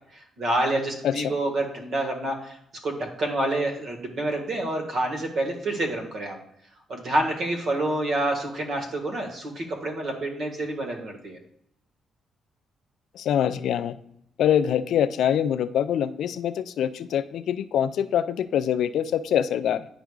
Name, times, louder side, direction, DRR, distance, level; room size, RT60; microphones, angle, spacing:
voice 1, 0.4-2.5 2.8-6.4 6.9-11.4, right 1 dB, 60° right, 1 dB, 1.5 m, -28 dB
voice 2, 13.1-14.0 14.4-19.9, left 9 dB, 75° left, 13 dB, 0.3 m, -24 dB
10.0 x 5.0 x 2.3 m, 0.73 s
cardioid pair, 90°, 0 cm